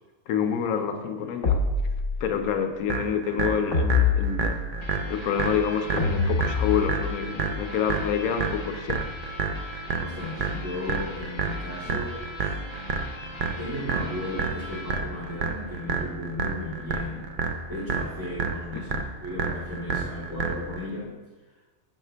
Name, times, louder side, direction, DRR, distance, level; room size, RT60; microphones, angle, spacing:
voice 1, 0.3-1.6 2.2-4.5 5.1-9.0 11.8-12.0 18.7-19.0, left 7 dB, 85° left, 6 dB, 1.0 m, -27 dB
sound 1, 1.4-2.5 3.7-5.0 6.0-7.2, left 4 dB, 65° left, 1.3 m, -25 dB
sound 2, 2.9-20.9, right 5 dB, 65° right, 0.4 m, -30 dB
sound 3, 4.8-16.1, left 2 dB, 30° left, 0.6 m, -42 dB
voice 2, 10.0-12.6 13.6-17.3 17.7-18.9 19.2-21.1, left 1 dB, 15° right, -9 dB, 2.0 m, -35 dB
6.4 x 6.4 x 3.3 m, 1.2 s
omnidirectional pair, 1.5 m